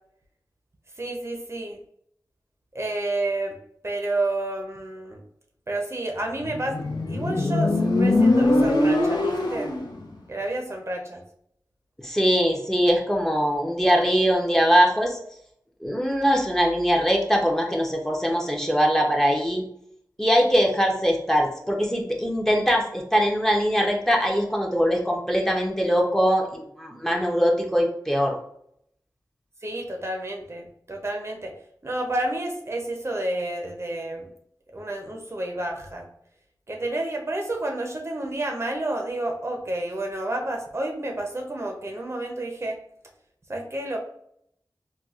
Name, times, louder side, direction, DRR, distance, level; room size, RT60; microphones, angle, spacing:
voice 1, 1.0-1.8 2.7-3.6 3.8-5.2 5.7-9.7 10.3-11.2 29.6-31.5 31.8-34.3 34.7-36.1 36.7-42.8 43.5-44.0, right 1 dB, 40° right, 2 dB, 0.5 m, -30 dB
Motorcycle, 6.4-9.9, left 2 dB, 80° left, 0.6 m, -22 dB
voice 2, 12.0-15.2 15.8-19.6 20.2-28.4, equal, 5° left, 1 dB, 0.6 m, -22 dB
4.1 x 2.2 x 2.3 m, 0.72 s
wide cardioid pair, 60°, 7 cm